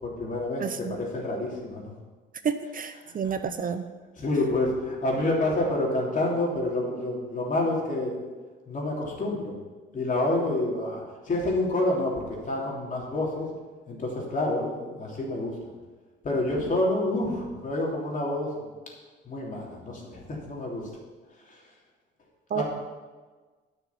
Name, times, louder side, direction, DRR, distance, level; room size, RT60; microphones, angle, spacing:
voice 1, 0.0-1.9 3.0-3.4 4.2-8.2 8.7-9.5 9.9-13.5 13.9-15.5 16.2-18.7 19.2-20.9 21.5-21.6 22.5-22.6, left 2 dB, 40° left, -2 dB, 3.2 m, -28 dB
voice 2, 0.6-0.9 2.4-3.8 22.5-22.6, right 6 dB, 45° right, 10 dB, 0.7 m, -30 dB
9.8 x 6.2 x 7.0 m, 1.3 s
cardioid pair, 90°, 20 cm